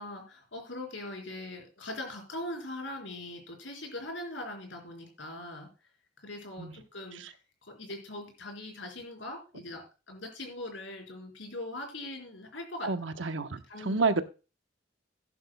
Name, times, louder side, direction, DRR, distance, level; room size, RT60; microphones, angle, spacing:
voice 1, 0.0-5.7 6.2-7.4 7.6-13.2 13.7-14.0, left 1 dB, 85° left, 4.1 m, -41 dB
voice 2, 12.8-14.2, right 4 dB, 85° right, 1.0 m, -29 dB
15.5 x 11.0 x 2.2 m
head